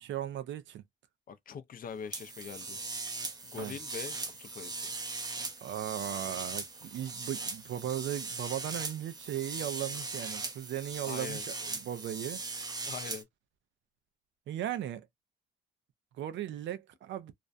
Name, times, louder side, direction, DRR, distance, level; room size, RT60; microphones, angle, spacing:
voice 1, 0.0-0.8 3.6-3.7 5.6-12.4 14.5-15.1 16.2-17.3, right 11 dB, 70° right, 0.5 m, -37 dB
voice 2, 1.3-2.8 3.4-4.9 11.0-11.4 12.9-13.3, left 6 dB, 45° left, 0.5 m, -43 dB
sound 1, 2.1-13.2, right 3 dB, 20° right, 0.5 m, -39 dB
2.4 x 2.1 x 2.5 m
cardioid pair, 90°, 20 cm